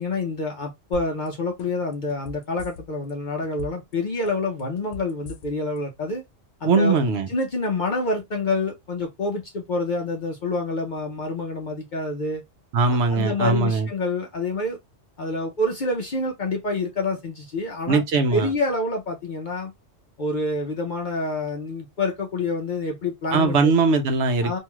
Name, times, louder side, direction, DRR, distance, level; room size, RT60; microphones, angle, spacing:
voice 1, 0.0-6.2 6.6-7.0 7.3-12.4 12.9-14.8 15.2-18.0 18.3-19.7 20.2-23.7 24.4-24.6, left 2 dB, 50° left, 0.6 m, -27 dB
sound 1, 0.9-1.3 1.6-3.1 3.4-3.9 4.3-5.8 6.1-6.2, left 3 dB, 85° left, 1.0 m, -39 dB
voice 2, 6.7-7.3 12.7-13.9 17.9-18.5 23.3-24.6, right 4 dB, 70° right, 0.9 m, -20 dB
2.7 x 2.3 x 2.9 m
omnidirectional pair, 1.3 m